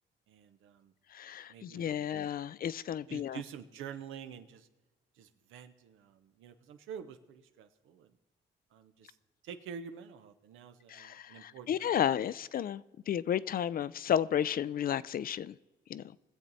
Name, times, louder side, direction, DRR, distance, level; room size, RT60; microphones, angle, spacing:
voice 1, 0.3-0.9 1.5-2.1 3.1-4.7 5.1-8.2 8.7-9.2 9.4-12.3, right 7 dB, 85° right, 0.9 m, -48 dB
voice 2, 1.1-3.4 10.9-15.5 15.9-16.0, left 9 dB, 45° left, 0.4 m, -32 dB
20.5 x 7.4 x 4.1 m
cardioid pair, 90°, 20 cm